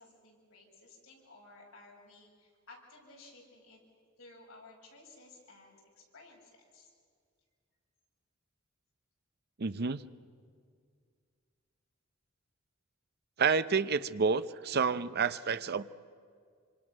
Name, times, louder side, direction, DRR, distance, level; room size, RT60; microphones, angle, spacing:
voice 1, 0.0-3.8 4.2-6.9, left 2 dB, 80° left, -1 dB, 6.2 m, -56 dB
voice 2, 9.6-10.0 13.4-15.8, right 5 dB, 50° right, 13 dB, 0.7 m, -29 dB
26.5 x 25.5 x 6.2 m, 2.1 s
head